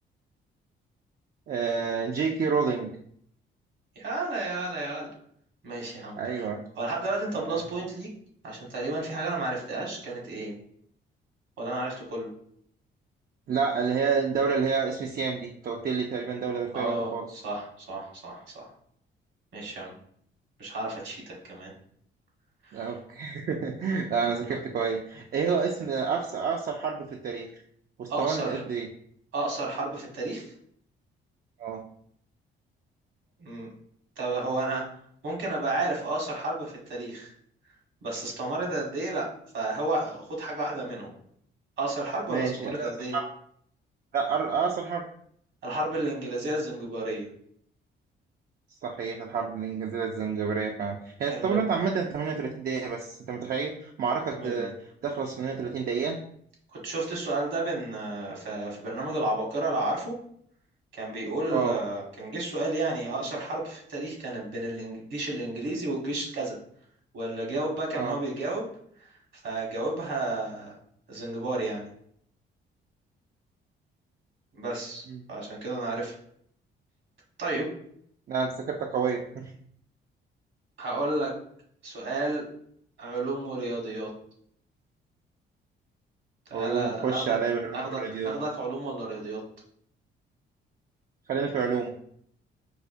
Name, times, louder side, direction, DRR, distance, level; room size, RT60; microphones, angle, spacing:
voice 1, 1.5-2.9 6.2-6.6 7.3-7.6 13.5-17.3 22.7-27.5 28.0-28.9 31.6-31.8 42.3-43.2 44.1-45.1 48.8-54.7 55.0-56.2 61.5-61.8 67.9-68.2 75.1-75.2 78.3-79.5 86.5-88.3 91.3-91.9, right 5 dB, 50° right, 1 dB, 0.4 m, -29 dB
voice 2, 3.9-5.1 5.6-6.5 6.8-8.1 8.4-10.5 11.6-12.3 16.7-18.7 19.5-19.9 20.6-21.7 22.6-23.0 28.1-28.6 29.3-30.5 33.4-33.7 34.2-34.9 35.2-37.3 38.0-39.3 39.5-41.1 41.8-43.1 45.6-47.3 51.3-51.6 54.3-54.7 56.7-60.1 60.9-66.6 67.1-68.7 69.4-70.8 71.1-71.9 74.6-76.1 77.4-77.7 80.8-81.3 81.8-82.4 83.0-84.1 86.5-87.4 87.7-89.4, right 2 dB, 70° right, -2 dB, 1.3 m, -32 dB
4.8 x 2.0 x 2.5 m, 0.64 s
cardioid pair, 90°, 20 cm